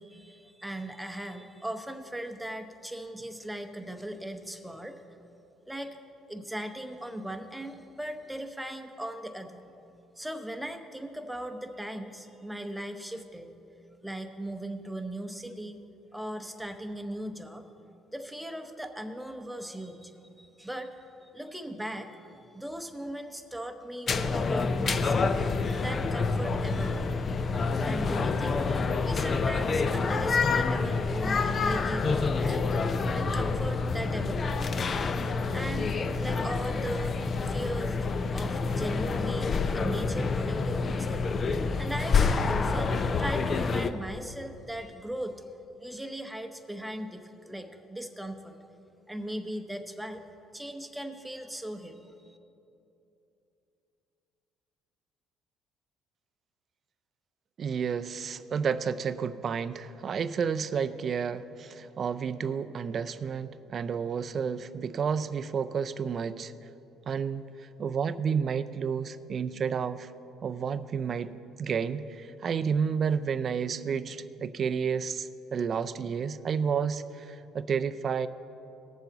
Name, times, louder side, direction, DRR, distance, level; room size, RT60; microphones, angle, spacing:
voice 1, 0.0-5.0 5.7-5.9 6.3-9.6 10.2-13.5 14.0-15.8 16.1-17.6 18.1-20.1 20.4-20.9 21.3-25.3 25.8-27.2 27.8-32.6 33.0-34.6 35.5-38.0 38.3-45.4 45.8-48.5 49.1-50.2 50.5-52.4, right 1 dB, 5° right, 6 dB, 0.9 m, -38 dB
sound 1, 24.1-43.9, left 4 dB, 40° left, 0.5 m, -28 dB
voice 2, 57.6-66.5 67.1-67.4 67.8-70.1 70.4-78.3, right 6 dB, 45° right, 12 dB, 0.4 m, -31 dB
18.5 x 7.1 x 3.9 m, 2.9 s
cardioid pair, 95°, 0 cm